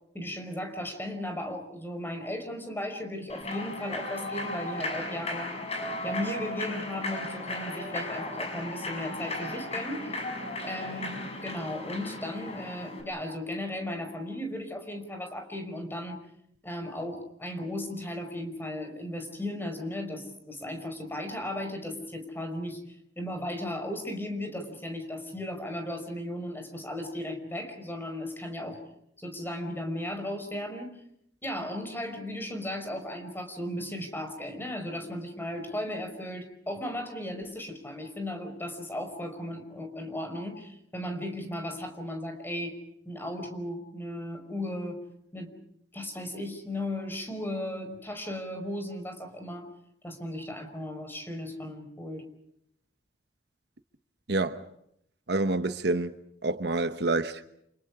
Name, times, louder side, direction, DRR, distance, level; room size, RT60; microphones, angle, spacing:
voice 1, 0.1-5.6 6.0-10.2 10.6-16.2 16.6-22.8 23.2-28.8 29.2-31.0 31.4-42.8 43.1-45.0 45.3-45.5 45.9-49.7 50.0-52.3, left 1 dB, 10° left, 5.5 m, -36 dB
Human voice / Clapping / Cheering, 3.3-13.0, left 1 dB, 35° left, 7.0 m, -36 dB
voice 2, 54.3-54.7 55.3-56.2 56.4-57.4, right 2 dB, 65° right, 1.2 m, -27 dB
30.0 x 29.0 x 5.0 m
head